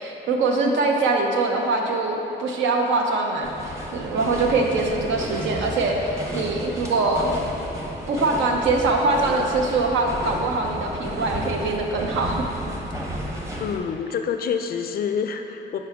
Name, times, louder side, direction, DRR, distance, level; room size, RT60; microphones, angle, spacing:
voice 1, 0.0-7.4 8.1-12.5, right 3 dB, 75° right, 2 dB, 0.7 m, -23 dB
sound 1, 3.4-13.8, equal, 15° right, 0.8 m, -32 dB
voice 2, 13.6-15.8, left 7 dB, 50° left, 6 dB, 0.4 m, -27 dB
5.9 x 4.5 x 3.5 m, 3.0 s
cardioid pair, 90°, 20 cm